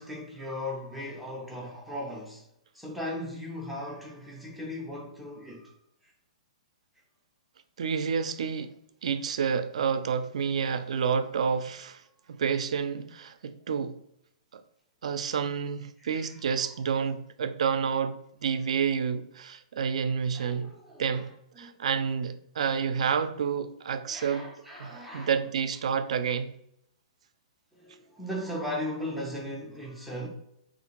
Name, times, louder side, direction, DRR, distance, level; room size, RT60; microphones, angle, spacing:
voice 1, 0.0-2.4 2.7-5.7 16.0-16.4 20.3-21.3 21.6-21.8 24.1-25.3 27.7-30.3, left 1 dB, ahead, 0.4 m, -37 dB
voice 2, 7.8-8.7 9.0-12.0 12.4-14.0 14.5-14.6 15.0-20.7 21.0-21.3 21.6-24.5 24.8-26.5, right 6 dB, 70° right, 0.3 m, -29 dB
3.5 x 2.5 x 2.8 m
hypercardioid pair, 165°, 4 cm